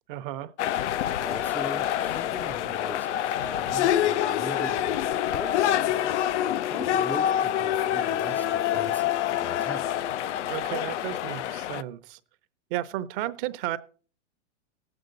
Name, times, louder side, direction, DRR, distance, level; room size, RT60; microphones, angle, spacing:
voice 1, 0.1-0.5 10.5-12.2 12.7-13.8, right 14 dB, 45° right, 0.8 m, -33 dB
sound 1, 0.6-11.8, left 11 dB, 75° left, 0.6 m, -26 dB
voice 2, 1.2-6.3 6.7-9.9, left 1 dB, 5° left, 0.4 m, -40 dB
18.0 x 8.0 x 3.9 m
hypercardioid pair, 140°, 36 cm